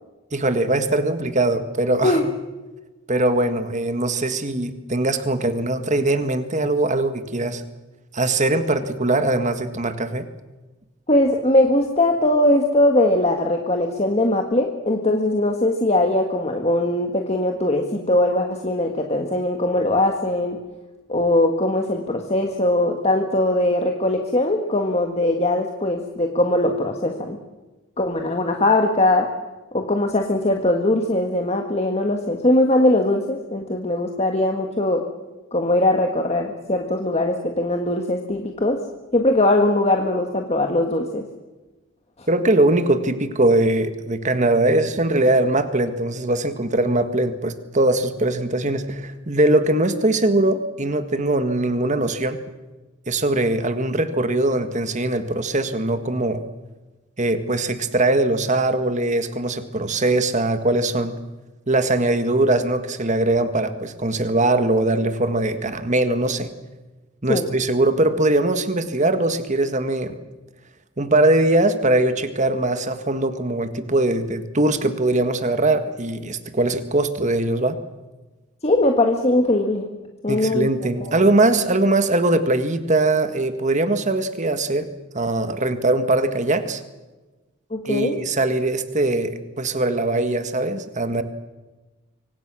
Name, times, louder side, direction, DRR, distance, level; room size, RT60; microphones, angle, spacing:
voice 1, 0.3-2.2 3.1-7.6 8.1-10.3 42.3-52.4 53.1-56.4 57.2-61.2 61.7-66.5 67.2-70.2 71.0-77.8 80.3-84.9 85.1-86.8 87.9-91.2, right 2 dB, 35° right, 9 dB, 1.8 m, -21 dB
voice 2, 11.1-20.6 21.1-27.4 28.0-29.3 29.7-35.0 35.5-38.8 39.1-41.2 67.3-67.5 78.6-79.8 80.2-80.7 81.1-81.2 87.7-88.2, left 1 dB, 30° left, 3 dB, 1.7 m, -20 dB
25.0 x 25.0 x 6.3 m, 1.2 s
head